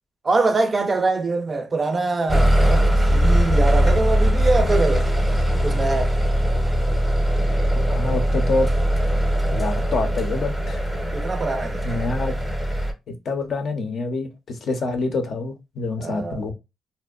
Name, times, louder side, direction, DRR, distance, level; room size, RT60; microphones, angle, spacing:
voice 1, 0.2-5.1 5.6-6.2 11.1-12.0 16.0-16.4, right 3 dB, 30° right, 0.4 m, -23 dB
sound 1, 2.3-12.9, equal, ahead, 0.7 m, -20 dB
voice 2, 7.7-8.7 9.5-10.9 11.8-16.5, left 3 dB, 60° left, 0.6 m, -27 dB
2.6 x 2.1 x 2.3 m
cardioid pair, 90°, 0 cm